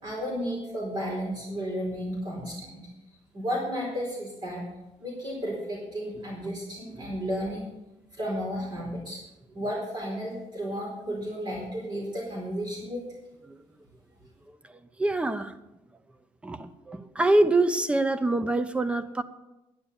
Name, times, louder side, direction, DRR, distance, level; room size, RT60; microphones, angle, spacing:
voice 1, 0.0-2.8 3.3-4.6 5.0-7.7 8.1-9.2 9.5-13.0, equal, 40° right, -3 dB, 4.5 m, -33 dB
voice 2, 14.5-15.6 16.4-19.2, right 2 dB, 10° right, 12 dB, 0.7 m, -26 dB
11.5 x 10.5 x 7.1 m, 0.96 s
cardioid pair, 160°, 11 cm